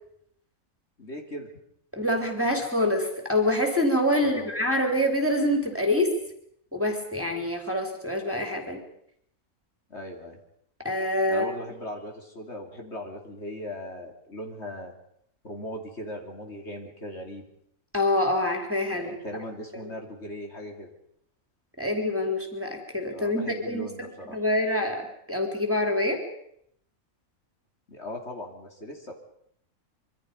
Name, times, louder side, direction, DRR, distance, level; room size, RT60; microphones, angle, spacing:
voice 1, 1.0-1.5 4.2-4.4 9.9-10.4 11.3-14.9 15.4-17.5 18.9-20.9 23.1-24.4 27.9-29.1, left 1 dB, 50° left, 2 dB, 3.3 m, -38 dB
voice 2, 1.9-6.1 6.7-8.8 10.8-11.5 17.9-19.1 21.8-25.0 25.3-26.2, left 1 dB, 10° right, 2 dB, 3.7 m, -26 dB
26.0 x 24.5 x 5.4 m, 0.71 s
omnidirectional pair, 1.5 m